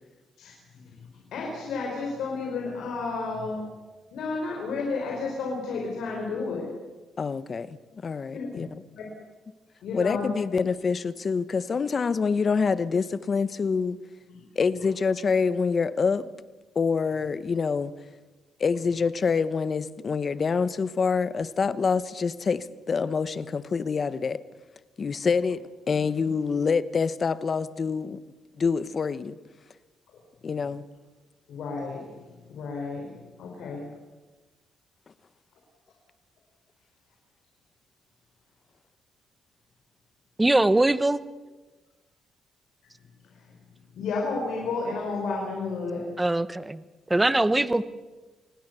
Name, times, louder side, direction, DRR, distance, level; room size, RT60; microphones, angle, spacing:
voice 1, 0.4-0.8 1.3-3.7 4.1-6.7 8.3-8.5 8.9-9.1 9.8-10.3 14.3-14.4 31.5-32.1 32.5-33.8 44.0-46.1, left 4 dB, 75° left, 5.3 m, -31 dB
voice 2, 7.2-8.7 9.9-14.0 14.5-16.3 16.7-17.9 18.6-24.4 25.0-28.2 28.6-29.4 30.4-30.8, left 5 dB, 40° left, 1.1 m, -26 dB
voice 3, 40.4-41.2 46.2-46.8 47.1-47.8, right 2 dB, 15° right, 1.0 m, -22 dB
27.5 x 19.5 x 7.0 m
cardioid pair, 90°, 0 cm